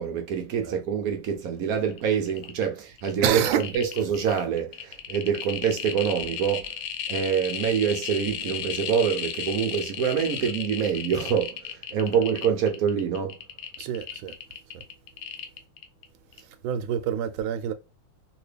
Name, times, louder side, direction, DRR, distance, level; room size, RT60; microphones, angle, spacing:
voice 1, 0.0-6.7 7.1-13.4, right 7 dB, 65° right, 0.9 m, -26 dB
sound 1, 1.9-2.0 2.3-2.6 3.0-16.0 16.3-16.4, left 8 dB, 85° left, 1.4 m, -34 dB
voice 2, 3.2-3.6 13.8-14.4 14.7-14.8 16.6-17.7, right 9 dB, 85° right, 1.4 m, -27 dB
3.0 x 2.9 x 3.2 m
omnidirectional pair, 2.1 m